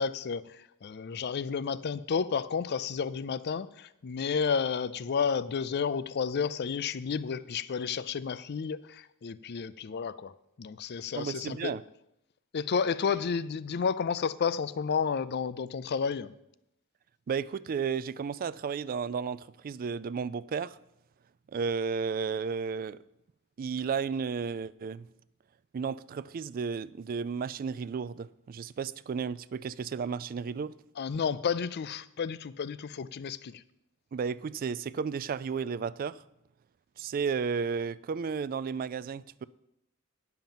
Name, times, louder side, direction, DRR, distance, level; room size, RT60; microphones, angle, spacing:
voice 1, 0.0-10.3 10.6-11.8 12.5-16.3 31.0-33.6, left 6 dB, 50° left, 0.4 m, -31 dB
voice 2, 11.2-11.8 17.3-20.8 21.5-23.0 23.6-25.1 25.7-30.7 34.1-36.2 37.0-39.4, right 6 dB, 40° right, 0.3 m, -33 dB
10.5 x 5.8 x 7.2 m
head